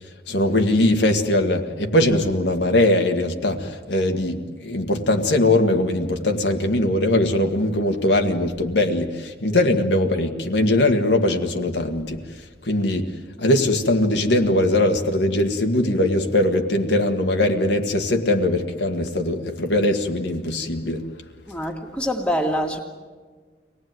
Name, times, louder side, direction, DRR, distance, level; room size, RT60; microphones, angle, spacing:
voice 1, 0.3-12.2 12.6-13.1 13.4-21.0, left 1 dB, 80° left, 1.8 m, -21 dB
voice 2, 21.5-22.8, equal, 5° left, 1.9 m, -25 dB
25.0 x 18.5 x 9.3 m
head